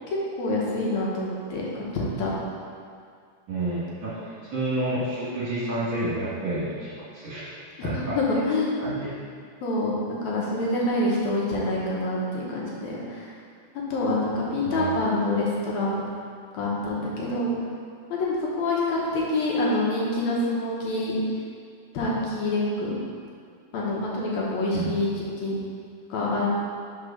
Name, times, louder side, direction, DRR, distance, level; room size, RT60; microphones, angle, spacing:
voice 1, 0.1-2.3 7.8-8.8 9.6-9.9 10.2-13.3 13.9-16.0 16.5-17.5 18.1-21.2 21.9-23.0 23.7-25.1 25.4-25.6 26.1-26.5, left 2 dB, 75° left, -5 dB, 2.3 m, -26 dB
voice 2, 3.5-7.4 7.8-8.1 8.8-9.1 14.6-14.9 24.7-24.9, right 2 dB, 50° right, -10 dB, 1.8 m, -30 dB
4.9 x 4.8 x 5.5 m, 2.2 s
omnidirectional pair, 3.4 m